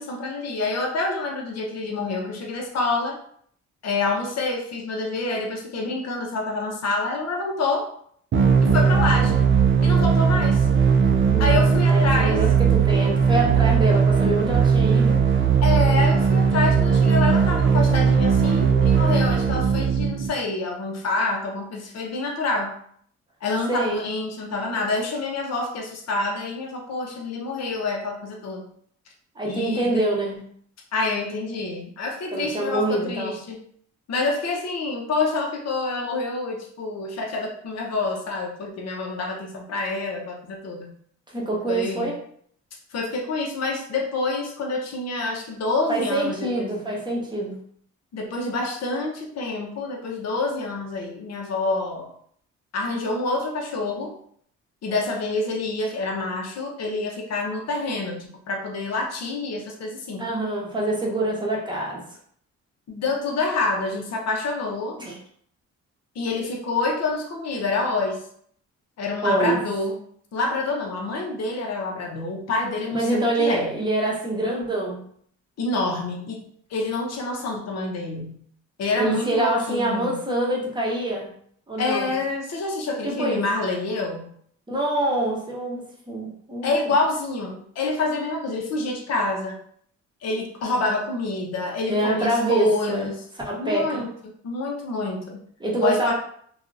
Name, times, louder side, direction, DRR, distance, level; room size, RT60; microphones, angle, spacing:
voice 1, 0.0-3.2 3.8-7.9 8.6-9.4 9.8-10.7 11.4-12.4 15.6-22.7 23.4-28.7 29.4-29.9 30.9-33.6 34.1-40.9 41.7-42.1 42.9-46.7 48.1-52.1 52.7-54.1 54.8-60.3 62.9-65.0 66.1-68.2 69.0-69.9 70.3-73.7 75.6-76.4 76.7-78.4 78.8-80.2 81.8-84.3 86.6-89.6 90.2-93.2 93.5-94.1 94.4-95.4 95.8-96.1, left 3 dB, 60° left, 1 dB, 0.8 m, -27 dB
sound 1, 8.3-20.3, right 6 dB, 40° right, 0.4 m, -18 dB
voice 2, 11.3-11.6 11.9-15.2 23.7-24.1 29.4-30.5 32.3-33.4 41.3-42.1 45.9-47.6 60.2-62.0 65.0-65.2 69.2-69.6 72.9-75.0 79.0-81.3 81.7-82.1 83.0-83.4 84.7-86.7 91.9-93.1 93.4-94.0 95.6-96.1, right 2 dB, 15° right, -3 dB, 0.9 m, -25 dB
2.8 x 2.4 x 2.5 m, 0.62 s
cardioid pair, 90°, 30 cm